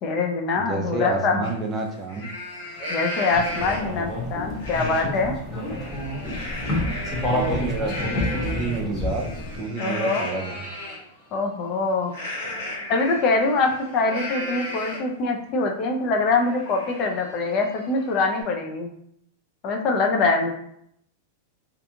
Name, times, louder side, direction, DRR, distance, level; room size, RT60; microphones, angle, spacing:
voice 1, 0.0-1.4 2.9-5.3 9.8-10.3 11.3-12.2 12.9-18.9 19.6-20.5, left 3 dB, 40° left, 2 dB, 0.4 m, -24 dB
voice 2, 0.6-2.3 7.3-9.3 9.5-10.6, right 3 dB, 25° right, 1 dB, 0.4 m, -29 dB
Livestock farm animals working animals, 1.4-1.5 1.9-4.0 4.6-5.0 5.4-11.0 12.1-15.2 15.6-15.7 16.1-18.4, left 1 dB, 85° left, 1.2 m, -35 dB
sound 1, 3.3-9.6, left 1 dB, 15° left, 0.9 m, -28 dB
2.5 x 2.3 x 2.7 m, 0.71 s
supercardioid pair, 135°, 0 cm